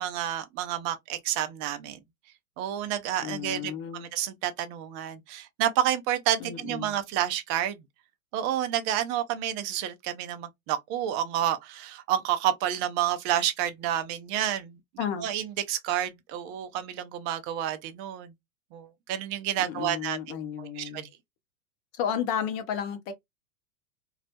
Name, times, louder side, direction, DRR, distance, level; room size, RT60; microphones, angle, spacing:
voice 1, 0.0-2.0 2.6-3.7 4.0-7.8 8.3-14.8 15.2-18.3 18.7-21.0, right 11 dB, 30° right, 0.4 m, -29 dB
voice 2, 3.2-4.1 6.4-6.9 15.0-15.3 19.6-21.1 21.9-23.1, left 8 dB, 45° left, 0.6 m, -32 dB
2.3 x 2.0 x 2.6 m
hypercardioid pair, 95°, 41 cm